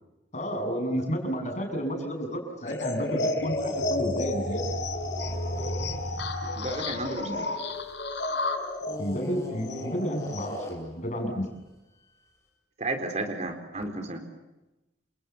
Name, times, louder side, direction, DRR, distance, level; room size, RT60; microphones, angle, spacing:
voice 1, 0.3-4.6 7.2-7.4 9.0-11.5, equal, 40° left, 4 dB, 7.6 m, -31 dB
sound 1, 2.7-10.7, left 2 dB, 65° left, 5.5 m, -32 dB
sound 2, 3.4-8.2 8.8-11.0, equal, 15° left, 7.5 m, -38 dB
voice 2, 6.6-7.5 12.8-14.2, right 2 dB, 35° right, 5 dB, 4.0 m, -32 dB
29.5 x 28.0 x 7.2 m, 1.0 s
head